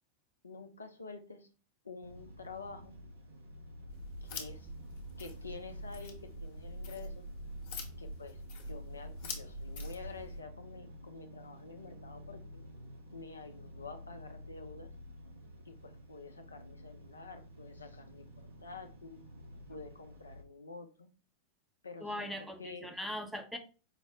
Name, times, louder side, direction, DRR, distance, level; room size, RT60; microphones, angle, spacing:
voice 1, 0.4-1.5 1.8-3.0 4.2-4.7 5.2-7.3 8.0-8.4 8.7-12.6 13.1-14.9 15.7-19.2 19.7-21.1 21.8-22.3 22.6-22.9, left 4 dB, 75° left, 6 dB, 0.5 m, -49 dB
sound 1, 2.0-20.4, equal, 70° right, 0.9 m, -52 dB
sound 2, 3.9-10.4, left 1 dB, 50° left, 0.9 m, -44 dB
voice 2, 22.0-23.6, equal, ahead, 4 dB, 0.6 m, -40 dB
4.8 x 2.1 x 3.4 m, 0.35 s
figure-of-eight pair, 90°, 0 cm